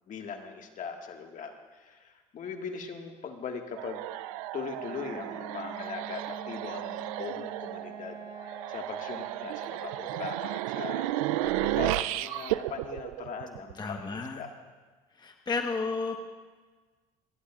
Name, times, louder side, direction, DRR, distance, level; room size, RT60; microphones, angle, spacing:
voice 1, 0.1-4.1 4.5-8.2 8.5-11.1 11.4-14.5, left 6 dB, 50° left, 3 dB, 1.8 m, -40 dB
sound 1, 3.8-14.0, right 16 dB, 85° right, 0.4 m, -33 dB
Wind instrument woodwind instrument, 4.7-10.4, right 3 dB, 30° right, 4.8 m, -46 dB
voice 2, 13.7-14.4 15.1-16.4, left 4 dB, 25° left, 3 dB, 1.2 m, -33 dB
28.5 x 11.5 x 2.4 m, 1.4 s
supercardioid pair, 75°, 17 cm